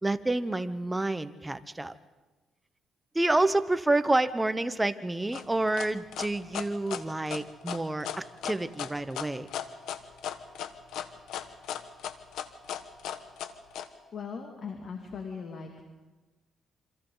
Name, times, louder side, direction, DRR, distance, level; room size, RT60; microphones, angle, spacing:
voice 1, 0.0-1.9 3.1-9.5, right 2 dB, 15° right, 12 dB, 1.0 m, -28 dB
sound 1, 5.3-13.9, left 10 dB, 85° left, 1.2 m, -36 dB
voice 2, 14.1-15.7, left 5 dB, 55° left, 3 dB, 2.4 m, -39 dB
27.5 x 25.5 x 4.0 m, 1.2 s
cardioid pair, 90°, 0 cm